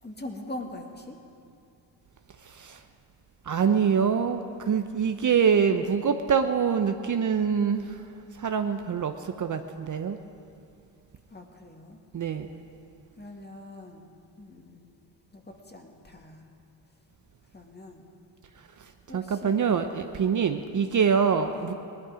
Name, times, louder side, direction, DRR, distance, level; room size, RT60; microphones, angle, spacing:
voice 1, 0.0-1.2 11.3-12.0 13.2-14.1 14.4-14.9 15.3-16.4 17.5-18.1 19.1-19.8 21.5-21.7, left 1 dB, 20° left, 2 dB, 2.1 m, -42 dB
voice 2, 2.5-2.8 3.5-8.0 8.4-10.2 12.1-12.5 19.1-21.7, right 7 dB, 40° right, 7 dB, 0.8 m, -25 dB
18.5 x 12.0 x 5.0 m, 2.6 s
supercardioid pair, 60°, 47 cm